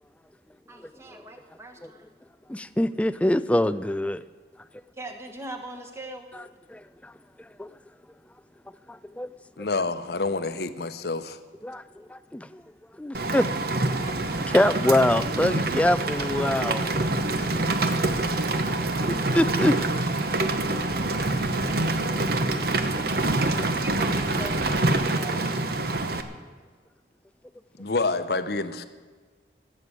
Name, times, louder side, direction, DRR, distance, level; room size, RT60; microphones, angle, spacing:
voice 1, 0.7-2.1 5.0-6.3 14.0-15.0 23.4-25.5, right 1 dB, 15° right, 3 dB, 1.4 m, -40 dB
voice 2, 2.5-4.2 6.7-7.1 7.6-7.7 8.9-9.3 11.6-12.6 13.0-13.7 14.5-16.9 17.2-17.3 19.0-19.7 20.7-20.8 22.9-23.0, left 1 dB, 5° left, 14 dB, 0.3 m, -25 dB
voice 3, 9.6-11.4 27.8-28.8, left 3 dB, 55° left, 11 dB, 0.8 m, -28 dB
Rain, 13.1-26.2, right 2 dB, 50° right, 1.0 m, -26 dB
16.0 x 7.6 x 8.3 m, 1.5 s
head